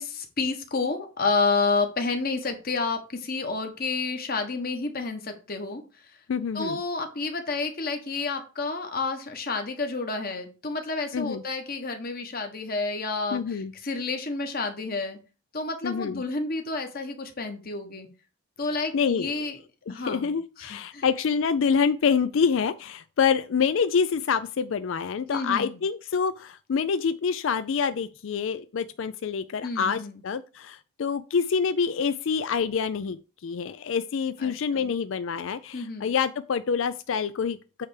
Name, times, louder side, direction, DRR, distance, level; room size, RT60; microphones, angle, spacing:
voice 1, 0.0-6.1 6.5-15.2 15.5-18.1 18.6-19.6 19.9-21.0 25.3-25.8 29.6-30.2 34.4-34.9 35.7-36.1, left 3 dB, 45° left, 1.4 m, -30 dB
voice 2, 6.3-6.8 11.1-11.4 13.3-13.7 15.8-16.2 18.9-19.5 19.9-37.9, left 6 dB, 65° left, 0.4 m, -26 dB
8.6 x 3.4 x 6.5 m
head